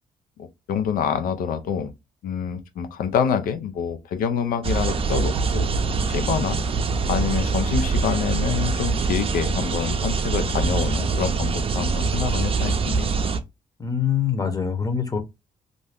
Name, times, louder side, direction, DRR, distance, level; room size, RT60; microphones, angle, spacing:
voice 1, 0.4-1.9 2.2-5.7 6.1-6.6 7.1-13.2, left 7 dB, 80° left, 0.5 m, -26 dB
sound 1, 4.6-13.4, right 4 dB, 40° right, 0.5 m, -24 dB
voice 2, 13.8-15.2, left 7 dB, 25° left, 0.8 m, -24 dB
2.6 x 2.1 x 3.3 m
supercardioid pair, 65°, 14 cm